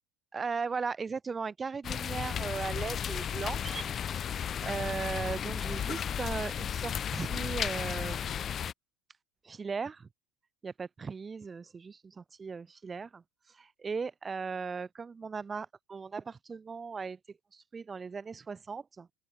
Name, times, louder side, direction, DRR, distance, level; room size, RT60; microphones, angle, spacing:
voice 1, 0.3-4.0 4.3-8.4 9.4-10.1 10.6-17.2 17.5-19.1, right 5 dB, 15° right, 5.4 m, -38 dB
sound 1, 1.8-8.7, left 8 dB, 25° left, 1.2 m, -34 dB
open air
supercardioid pair, 160°, 0 cm